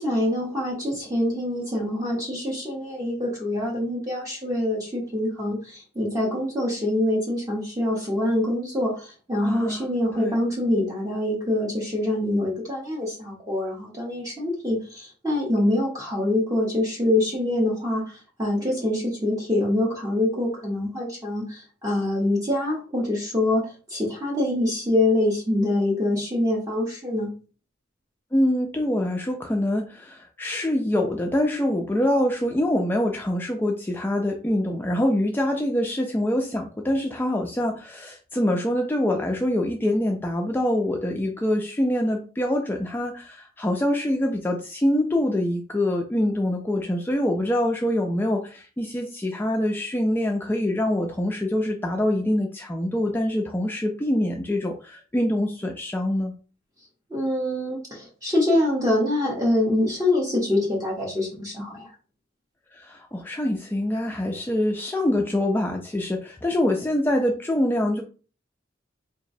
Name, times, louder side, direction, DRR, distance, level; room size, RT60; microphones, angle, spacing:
voice 1, 0.0-27.3 57.1-61.9, left 1 dB, 20° right, -3 dB, 0.9 m, -25 dB
voice 2, 9.4-9.9 10.2-10.4 28.3-56.3 62.7-68.0, left 1 dB, 10° left, 2 dB, 0.3 m, -25 dB
3.9 x 2.9 x 2.6 m, 0.37 s
head